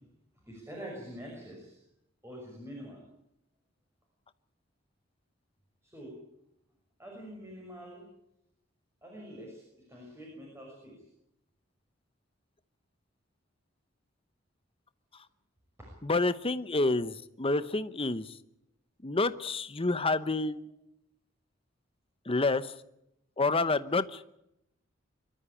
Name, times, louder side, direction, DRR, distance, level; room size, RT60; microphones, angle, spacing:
voice 1, 0.4-1.8 2.2-3.0 5.8-6.2 7.0-8.1 9.0-9.6 9.9-11.0 15.8-15.9, equal, 15° right, -1 dB, 6.2 m, -45 dB
voice 2, 16.0-18.3 19.0-20.6 22.3-22.7 23.4-24.2, left 3 dB, 30° left, 13 dB, 0.9 m, -28 dB
24.5 x 13.0 x 10.0 m, 0.81 s
head